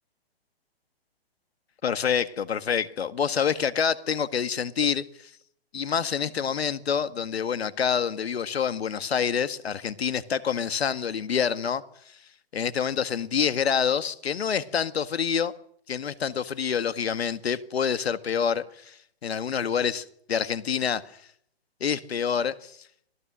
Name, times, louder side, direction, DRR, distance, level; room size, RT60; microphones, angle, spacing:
voice 1, 1.8-5.3 5.7-12.2 12.5-15.5 15.9-21.0 21.8-22.8, left 7 dB, 80° left, 1.8 m, -27 dB
26.0 x 17.5 x 6.3 m
hypercardioid pair, 170°, 31 cm